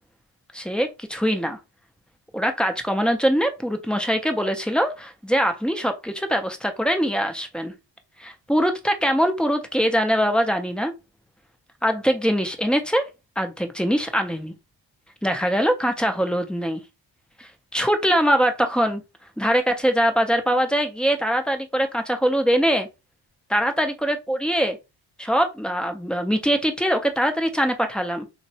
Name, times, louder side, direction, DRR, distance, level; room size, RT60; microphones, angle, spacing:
voice 1, 0.5-1.6 2.3-7.7 8.2-10.9 11.8-13.1 13.4-14.5 15.2-16.8 17.4-19.0 19.4-22.9 23.5-24.8 25.2-28.3, equal, ahead, 0.3 m, -22 dB
3.5 x 2.0 x 2.6 m
wide cardioid pair, 140°, 45 cm